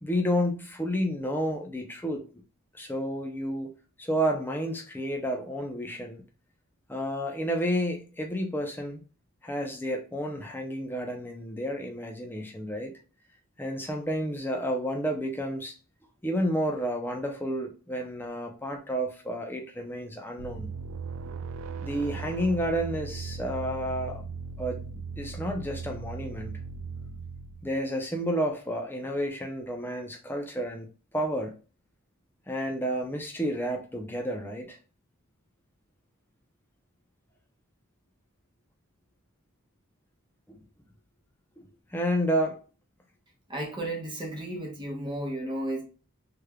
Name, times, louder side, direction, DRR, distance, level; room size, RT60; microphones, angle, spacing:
voice 1, 0.0-2.2 2.7-3.7 4.0-6.2 6.9-9.0 9.4-12.9 13.6-15.7 16.2-20.7 21.8-24.2 24.6-24.8 25.2-26.6 27.6-30.9 31.1-31.5 32.5-34.8 40.5-40.6 41.6-42.6, equal, 10° left, 0.6 m, -30 dB
sound 1, 20.4-27.8, right 4 dB, 65° right, 0.3 m, -38 dB
voice 2, 43.5-45.8, right 1 dB, 20° right, 1.0 m, -33 dB
3.4 x 3.3 x 2.3 m
head